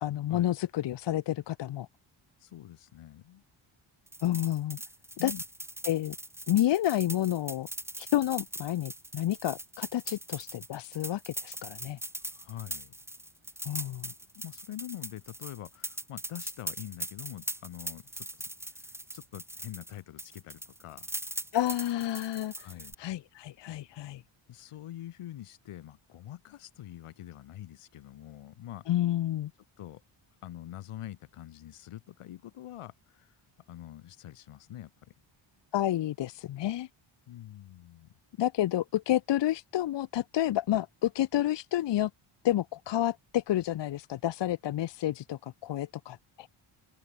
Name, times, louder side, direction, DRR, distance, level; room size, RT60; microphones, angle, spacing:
voice 1, 0.0-1.9 4.2-4.8 5.2-5.3 5.9-6.2 6.5-7.7 8.0-12.0 13.6-14.1 21.5-24.2 28.9-29.5 35.7-36.9 38.4-42.1 42.4-46.5, left 13 dB, 60° left, 0.8 m, -30 dB
voice 2, 2.4-3.4 5.2-5.4 12.3-12.9 14.0-18.3 18.7-21.1 22.6-22.9 24.5-28.8 29.8-30.0 30.4-33.3 33.7-35.1 37.3-38.1, left 13 dB, 90° left, 3.2 m, -45 dB
sound 1, 4.1-19.9 20.2-22.9, right 1 dB, 5° right, 1.4 m, -41 dB
open air
cardioid pair, 120°, 50 cm